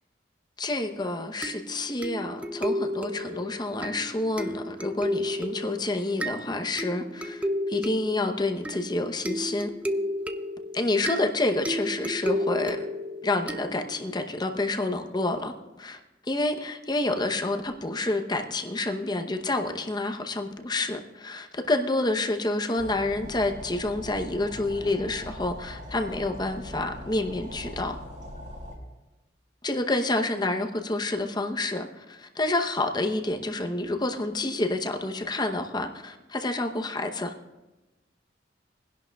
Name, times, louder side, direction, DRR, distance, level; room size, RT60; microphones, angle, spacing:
voice 1, 0.6-9.7 10.7-12.9 13.2-28.0 29.6-37.3, left 2 dB, 25° left, 5 dB, 0.8 m, -28 dB
sound 1, 1.4-14.2, equal, 10° right, 0.4 m, -33 dB
sound 2, 22.8-28.8, equal, 45° right, 5.1 m, -41 dB
23.0 x 11.0 x 2.3 m, 1.1 s
head